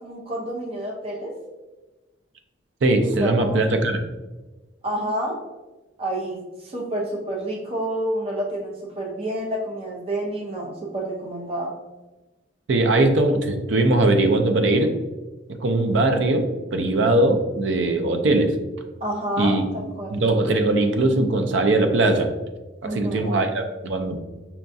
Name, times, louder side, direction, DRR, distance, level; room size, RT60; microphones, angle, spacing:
voice 1, 0.0-1.3 3.2-3.6 4.8-5.4 6.0-11.7 19.0-20.1 22.8-23.4, right 1 dB, 30° right, -2 dB, 0.7 m, -29 dB
voice 2, 2.8-4.0 12.7-14.9 15.6-18.5 19.4-19.7 20.1-22.3 22.8-24.2, right 2 dB, 70° right, 6 dB, 0.5 m, -20 dB
5.6 x 2.3 x 2.6 m, 1.2 s
head